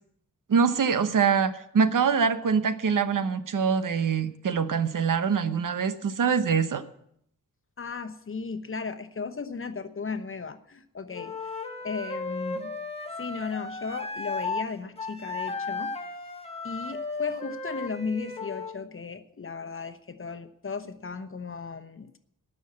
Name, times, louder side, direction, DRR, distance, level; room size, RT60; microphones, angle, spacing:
voice 1, 0.5-6.8, right 6 dB, 75° right, 10 dB, 1.0 m, -24 dB
voice 2, 7.8-11.3 11.8-12.7 13.2-15.9 16.6-22.2, left 5 dB, 40° left, 9 dB, 1.0 m, -35 dB
Wind instrument woodwind instrument, 11.1-14.7 15.0-18.8, left 3 dB, 20° left, 1.3 m, -35 dB
19.0 x 6.4 x 7.5 m, 0.72 s
wide cardioid pair, 140°, 32 cm